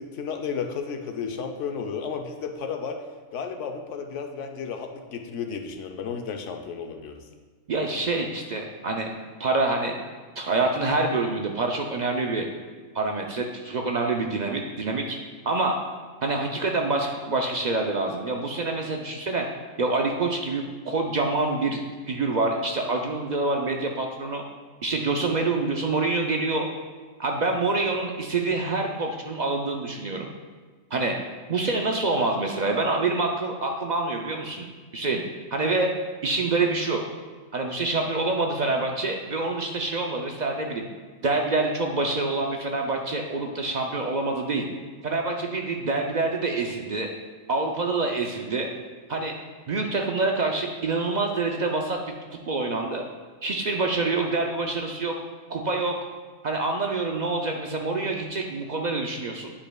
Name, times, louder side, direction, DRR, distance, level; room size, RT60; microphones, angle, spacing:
voice 1, 0.0-3.0 3.3-7.3, left 6 dB, 75° left, 4 dB, 1.0 m, -33 dB
voice 2, 7.7-9.1 9.4-10.0 10.4-12.5 12.9-15.2 15.4-15.8 16.2-19.5 19.8-21.8 22.1-24.4 24.8-26.7 27.2-30.3 30.9-31.1 31.5-34.7 34.9-35.2 35.5-35.9 36.2-37.0 37.5-40.9 41.2-44.7 45.0-47.1 47.5-48.7 49.1-49.4 49.7-52.0 52.5-53.0 53.4-55.1 55.5-55.9 56.4-59.5, right 3 dB, 60° right, 2 dB, 0.4 m, -26 dB
9.8 x 5.2 x 2.3 m, 1.5 s
omnidirectional pair, 1.3 m